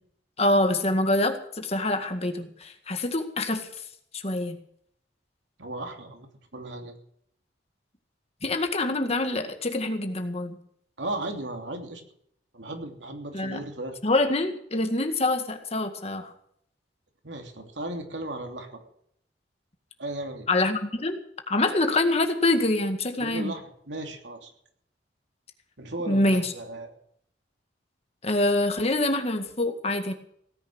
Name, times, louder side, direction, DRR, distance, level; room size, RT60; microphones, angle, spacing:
voice 1, 0.4-3.7 4.1-4.6 8.4-10.6 13.3-13.6 14.0-16.3 20.5-21.2 21.5-23.5 26.1-26.5 28.2-30.1, left 2 dB, 35° left, 6 dB, 1.9 m, -25 dB
voice 2, 5.6-7.0 11.0-12.0 12.5-14.0 17.2-18.8 20.0-20.5 23.2-24.5 25.8-26.9, right 1 dB, 85° right, 4 dB, 2.9 m, -36 dB
17.5 x 10.5 x 6.3 m, 0.68 s
head